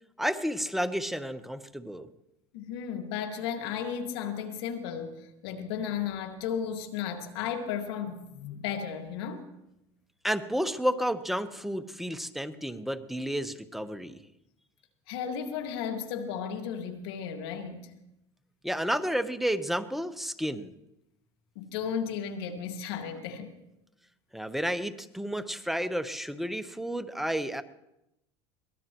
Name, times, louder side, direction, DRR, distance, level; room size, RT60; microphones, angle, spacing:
voice 1, 0.2-2.1 10.2-14.2 18.6-20.7 24.3-27.6, equal, ahead, 10 dB, 0.9 m, -31 dB
voice 2, 2.5-9.4 15.1-17.9 21.6-23.5, left 7 dB, 85° left, 5 dB, 2.0 m, -34 dB
23.0 x 18.0 x 3.0 m, 0.87 s
supercardioid pair, 110°, 13 cm